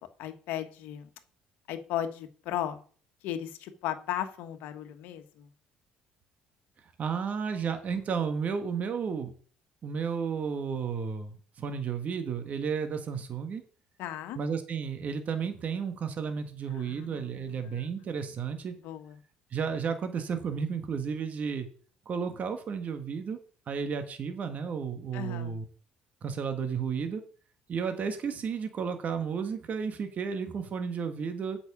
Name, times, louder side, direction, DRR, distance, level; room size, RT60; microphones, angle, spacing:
voice 1, 0.2-1.1 1.7-2.8 3.2-5.5 14.0-14.4 16.9-17.9 18.8-19.1 25.1-25.6, left 11 dB, 75° left, 8 dB, 1.3 m, -36 dB
voice 2, 7.0-9.3 9.8-13.6 14.3-18.7 19.5-21.7 22.0-23.4 23.7-25.6 26.2-27.2 27.7-31.6, right 6 dB, 50° right, 7 dB, 1.6 m, -32 dB
8.2 x 6.0 x 7.1 m, 0.43 s
hypercardioid pair, 65°, 3 cm